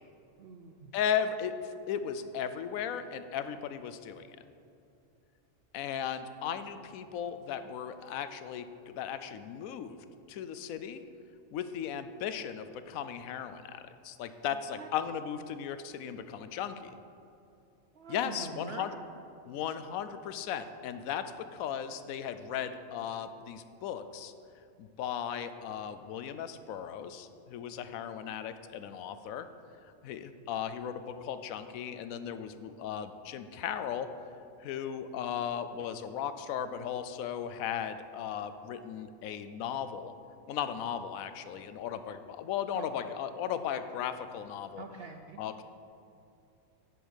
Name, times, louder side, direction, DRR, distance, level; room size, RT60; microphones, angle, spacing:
voice 1, 0.4-0.9 14.7-14.9 17.9-19.0 42.7-42.9 44.8-45.4, right 4 dB, 65° right, 5 dB, 0.6 m, -44 dB
voice 2, 0.9-4.3 5.7-10.0 10.3-11.0 11.5-16.9 18.1-19.0 19.4-24.3 24.8-29.5 30.0-34.1 34.6-40.1 40.5-44.8 45.4-45.6, left 8 dB, 80° left, 11 dB, 1.0 m, -36 dB
9.3 x 5.1 x 6.3 m, 2.6 s
omnidirectional pair, 1.4 m